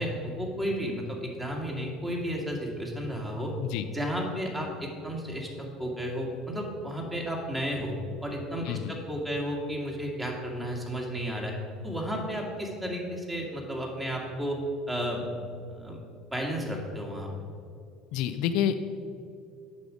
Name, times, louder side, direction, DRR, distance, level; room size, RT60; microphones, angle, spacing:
voice 1, 0.0-3.5 3.9-7.9 8.2-11.6 11.8-14.6 14.9-15.3 15.7-16.0 16.3-17.3, equal, 15° right, 0 dB, 2.1 m, -33 dB
voice 2, 18.1-18.7, left 10 dB, 65° left, 10 dB, 0.4 m, -28 dB
8.3 x 6.3 x 5.0 m, 2.4 s
hypercardioid pair, 70°, 0 cm